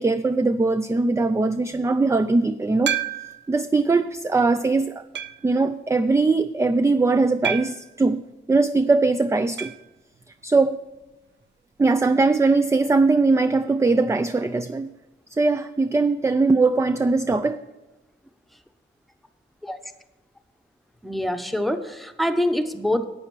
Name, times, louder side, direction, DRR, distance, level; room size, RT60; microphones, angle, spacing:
voice 1, 0.0-3.0 3.5-5.0 5.4-8.2 8.5-9.7 10.4-10.8 11.8-14.9 15.3-17.6, right 3 dB, 15° right, 0.3 m, -20 dB
sound 1, 2.9-3.5 4.2-4.3 5.1-5.5 7.4-7.9 9.6-9.9 10.1-10.2 10.5-10.6 12.6-12.7, right 8 dB, 70° right, 0.6 m, -29 dB
voice 2, 21.0-23.0, left 1 dB, ahead, 0.9 m, -25 dB
11.5 x 8.8 x 4.6 m
wide cardioid pair, 100°, 19 cm